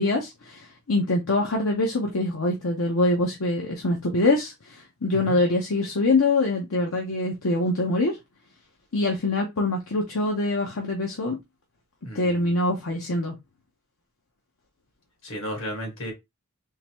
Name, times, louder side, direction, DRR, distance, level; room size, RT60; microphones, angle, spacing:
voice 1, 0.0-8.2 8.9-11.4 12.1-13.3, left 2 dB, 80° left, 0.8 m, -24 dB
voice 2, 12.0-12.5 15.2-16.1, equal, 65° left, 1.8 m, -34 dB
3.9 x 3.2 x 3.0 m
head